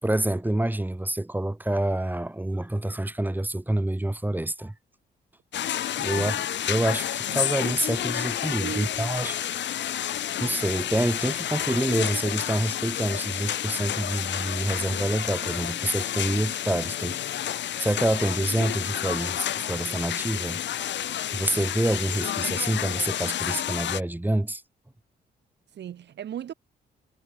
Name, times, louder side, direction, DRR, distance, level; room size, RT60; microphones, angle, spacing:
voice 1, 0.0-4.7 6.0-6.4 6.7-9.5 10.4-17.2 17.5-20.6 21.3-24.6, right 1 dB, 10° right, 6.9 m, -27 dB
sound 1, 5.5-24.0, left 11 dB, 75° left, 3.2 m, -30 dB
voice 2, 6.0-6.4 8.6-9.0 25.7-26.5, right 10 dB, 70° right, 3.1 m, -36 dB
cardioid pair, 80°, 19 cm